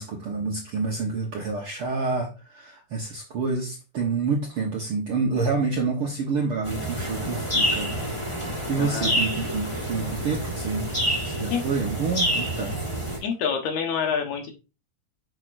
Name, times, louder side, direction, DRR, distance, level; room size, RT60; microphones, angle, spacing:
voice 1, 0.0-8.0 8.7-10.9 11.2-12.7, right 4 dB, 65° right, 0 dB, 1.4 m, -28 dB
sound 1, 6.6-13.2, equal, 50° left, 0.3 m, -28 dB
voice 2, 8.8-9.1 11.5-11.6 13.2-14.6, left 6 dB, 70° left, 4 dB, 2.5 m, -27 dB
8.1 x 5.9 x 2.5 m, 0.30 s
omnidirectional pair, 3.8 m